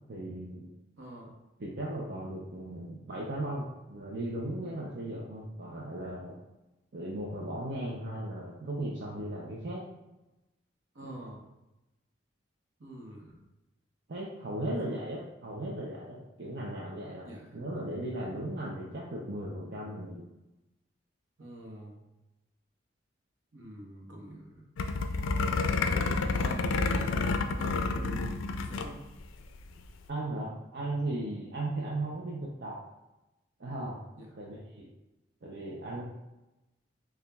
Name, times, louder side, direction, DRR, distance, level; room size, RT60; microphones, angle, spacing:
voice 1, 0.1-0.7 1.6-6.3 6.9-9.8 11.0-11.1 14.1-17.3 17.5-20.2 30.1-32.8 33.6-34.0 34.3-34.9 35.4-36.0, right 1 dB, 55° right, -4 dB, 0.5 m, -37 dB
voice 2, 1.0-1.4 10.9-11.4 12.8-13.4 17.2-17.6 21.4-22.0 23.5-24.7 25.9-29.0 34.2-34.3, equal, 75° right, -1 dB, 1.0 m, -45 dB
sound 1, 24.8-28.9 29.2-29.3 29.6-29.9, left 3 dB, 85° left, 0.4 m, -29 dB
6.7 x 2.4 x 2.3 m, 0.98 s
head